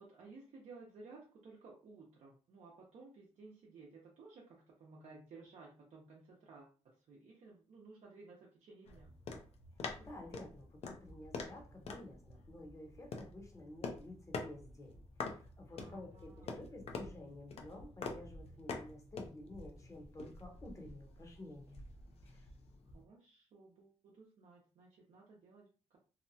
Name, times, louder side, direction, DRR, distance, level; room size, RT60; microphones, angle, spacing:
voice 1, 0.0-9.1 15.7-16.7 22.9-26.0, right 3 dB, 70° right, 0.7 m, -57 dB
sound 1, 8.9-23.0, left 4 dB, 55° left, 0.5 m, -47 dB
voice 2, 9.7-21.8 22.2-22.5, left 1 dB, 25° left, 0.8 m, -52 dB
2.8 x 2.1 x 2.7 m
cardioid pair, 125°, 12 cm